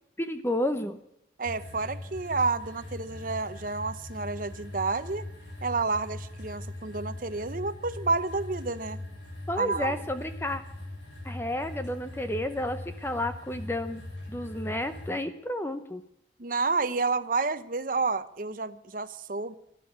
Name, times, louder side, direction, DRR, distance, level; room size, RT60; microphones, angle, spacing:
voice 1, 0.2-1.0 9.5-10.6 11.2-14.0 14.3-16.0, left 1 dB, 15° left, 9 dB, 0.7 m, -31 dB
sound 1, 1.4-15.1, left 1 dB, 70° left, 7.8 m, -41 dB
voice 2, 1.4-5.3 5.6-9.0 9.6-10.0 16.4-19.5, right 3 dB, 45° right, 13 dB, 0.8 m, -30 dB
12.5 x 12.5 x 8.6 m, 0.77 s
head